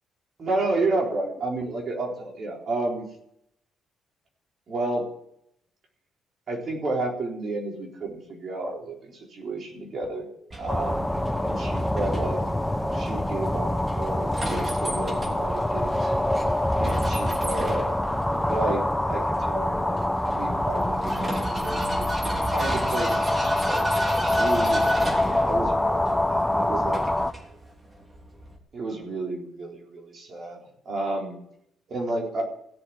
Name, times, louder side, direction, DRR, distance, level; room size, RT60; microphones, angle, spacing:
voice 1, 0.4-3.1 4.7-5.1 6.5-10.3 10.6-11.0 11.4-12.4 12.9-16.1 16.8-17.9 18.4-20.0 20.3-27.0 28.7-31.4 31.9-32.5, right 2 dB, 50° right, 0 dB, 4.1 m, -31 dB
Vehicle, 10.5-28.6, right 1 dB, 25° right, 3.2 m, -36 dB
sound 1, 10.7-27.3, left 1 dB, 5° left, 0.9 m, -25 dB
16.5 x 7.3 x 9.9 m, 0.75 s
cardioid pair, 90°, 0 cm